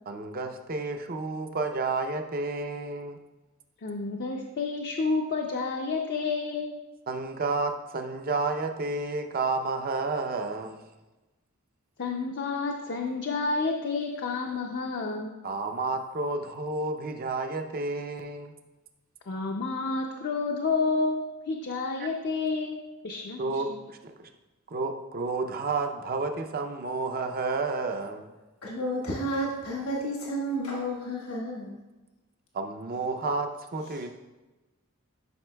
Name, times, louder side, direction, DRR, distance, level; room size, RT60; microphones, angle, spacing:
voice 1, 0.1-3.2 7.1-10.8 15.4-18.5 22.0-22.1 23.4-24.1 24.7-28.3 32.5-34.1, right 3 dB, 45° right, 5 dB, 0.6 m, -31 dB
voice 2, 3.8-6.8 12.0-15.3 19.3-23.8, left 4 dB, 50° left, 1 dB, 0.5 m, -30 dB
voice 3, 28.6-31.8, equal, 80° left, -3 dB, 1.3 m, -31 dB
10.5 x 5.3 x 2.2 m, 1.1 s
head